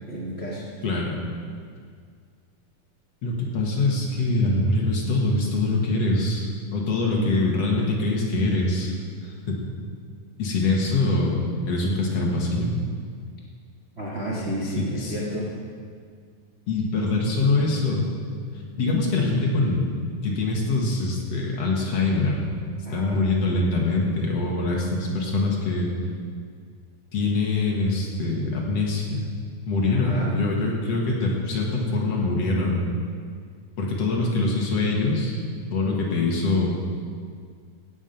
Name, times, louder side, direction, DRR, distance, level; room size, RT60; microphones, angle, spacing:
voice 1, 0.1-0.7 3.3-3.4 14.0-15.5 22.8-23.2 29.9-30.4, right 1 dB, 65° right, -6 dB, 0.6 m, -31 dB
voice 2, 0.8-1.2 3.2-8.9 9.2-9.6 10.4-12.7 14.8-15.1 16.7-18.1 18.8-19.9 20.2-22.4 22.9-25.9 27.1-29.3 29.7-32.8 33.8-35.4 35.7-36.8, left 2 dB, 50° left, -2 dB, 2.3 m, -24 dB
17.0 x 8.6 x 5.5 m, 2.1 s
omnidirectional pair, 4.3 m